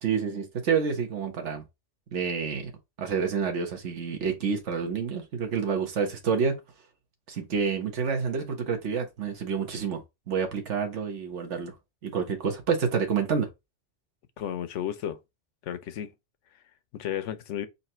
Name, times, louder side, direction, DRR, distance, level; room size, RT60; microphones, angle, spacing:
voice 1, 0.0-1.6 2.1-2.7 3.0-6.6 7.3-10.0 10.3-11.7 12.0-13.5, right 6 dB, 75° right, 1.4 m, -28 dB
voice 2, 14.4-15.2 15.6-16.1 16.9-17.7, left 10 dB, 90° left, 1.0 m, -33 dB
4.0 x 2.7 x 4.3 m
omnidirectional pair, 1.2 m